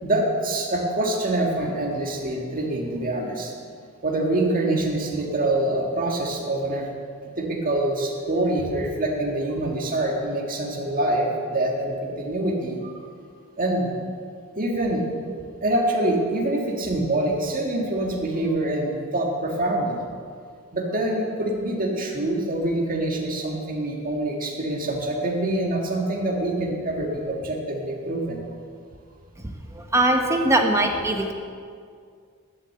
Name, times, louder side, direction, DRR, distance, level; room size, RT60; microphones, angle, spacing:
voice 1, 0.0-3.5 4.0-6.9 7.4-12.9 13.6-13.9 14.6-15.1 15.6-20.0 20.7-28.4, right 1 dB, 40° right, 0 dB, 1.9 m, -25 dB
voice 2, 29.4-31.3, right 1 dB, 15° right, 3 dB, 1.0 m, -22 dB
11.5 x 7.0 x 7.7 m, 2.2 s
head